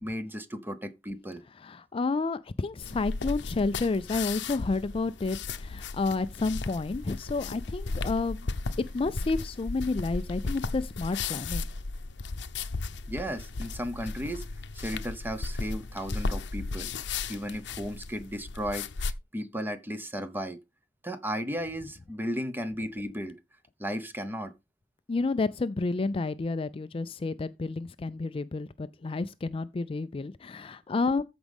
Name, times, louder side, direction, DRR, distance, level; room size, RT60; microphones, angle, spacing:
voice 1, 0.0-1.4 13.1-14.4 14.7-16.9 17.3-18.9 19.3-20.6 21.0-23.4 23.8-24.5, equal, 10° right, 1.0 m, -35 dB
voice 2, 1.6-8.5 8.9-11.7 25.1-31.2, left 3 dB, 30° left, 0.4 m, -30 dB
sound 1, 2.8-19.1, left 3 dB, 75° left, 0.7 m, -35 dB
14.0 x 5.1 x 3.5 m
head